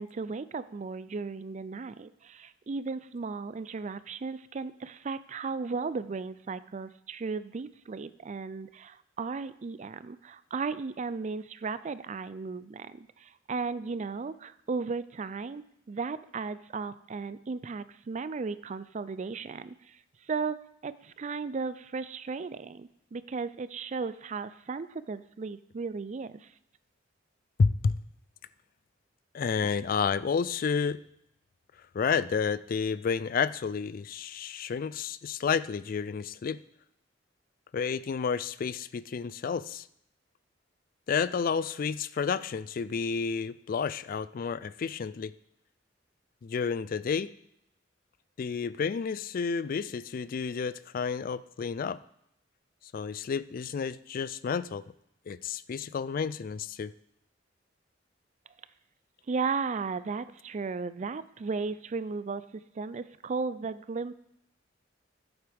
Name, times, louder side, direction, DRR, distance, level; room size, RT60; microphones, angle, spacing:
voice 1, 0.0-20.6 20.8-26.5 59.3-64.1, right 4 dB, 40° right, 15 dB, 0.4 m, -35 dB
voice 2, 27.6-27.9 29.3-31.0 31.9-36.6 37.7-39.9 41.1-45.3 46.4-47.3 48.4-52.0 52.9-54.8 55.3-56.9, left 6 dB, 50° left, 16 dB, 0.3 m, -30 dB
14.0 x 8.0 x 3.5 m, 0.76 s
head